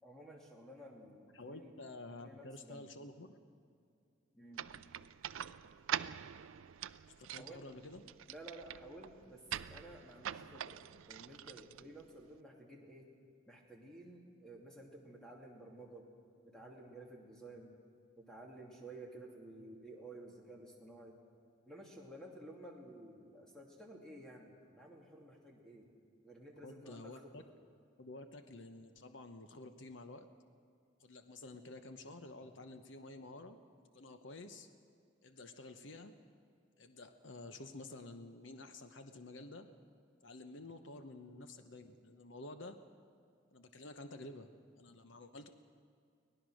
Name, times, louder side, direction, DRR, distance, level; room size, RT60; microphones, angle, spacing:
voice 1, 0.0-1.7 2.2-2.9 4.3-4.7 7.4-7.7 8.3-13.1 13.5-16.1 16.4-17.7 18.2-21.2 21.7-25.9 26.2-27.5, right 1 dB, 5° left, -1 dB, 2.7 m, -53 dB
voice 2, 1.3-3.4 7.2-8.0 26.6-27.4 28.0-30.3 31.0-33.6 33.9-34.7 35.2-36.1 36.8-39.7 40.2-42.8 43.5-44.5 44.8-45.5, left 2 dB, 70° left, 8 dB, 1.0 m, -50 dB
sound 1, 4.5-12.4, right 10 dB, 90° right, 0.4 m, -45 dB
24.0 x 18.0 x 6.4 m, 2.3 s
head